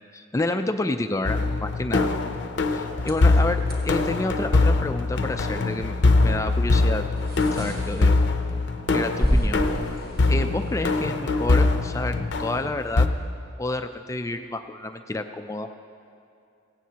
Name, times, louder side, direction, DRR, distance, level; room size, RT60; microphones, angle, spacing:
voice 1, 0.1-2.1 2.7-7.0 7.5-8.2 8.9-9.7 10.3-13.1 13.6-15.7, left 2 dB, 15° left, 7 dB, 0.3 m, -29 dB
sound 1, 1.3-13.1, left 3 dB, 60° left, 0.6 m, -23 dB
sound 2, 2.9-11.2, equal, 50° right, 1.6 m, -32 dB
16.5 x 16.5 x 2.9 m, 2.5 s
head